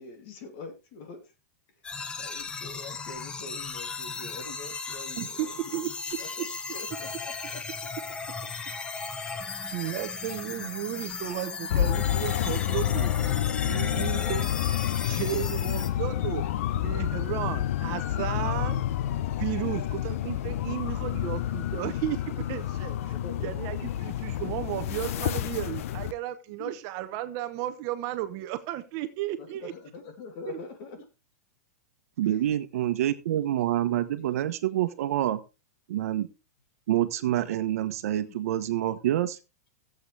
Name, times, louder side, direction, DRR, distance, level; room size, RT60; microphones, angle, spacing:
voice 1, 0.0-1.3 2.0-7.6 8.4-8.5 9.3-9.6 13.9-14.4 19.6-20.0 22.9-23.9 26.6-26.8 29.4-31.1 32.3-32.5 38.2-38.4, left 4 dB, 40° left, 6 dB, 2.8 m, -45 dB
sound 1, 1.8-15.9, left 4 dB, 10° left, 0.8 m, -36 dB
voice 2, 5.2-5.9 6.4-6.5 9.2-9.3 9.7-13.1 13.6-14.5 15.1-16.4 16.7-18.8 19.4-22.9 23.4-29.7 30.5-30.6, right 14 dB, 35° right, 10 dB, 1.0 m, -34 dB
sound 2, 11.7-26.1, left 11 dB, 60° left, 0.8 m, -29 dB
voice 3, 32.2-35.4 35.9-36.3 36.9-39.4, right 12 dB, 65° right, 11 dB, 1.2 m, -27 dB
16.0 x 8.0 x 3.4 m, 0.29 s
supercardioid pair, 160°, 9 cm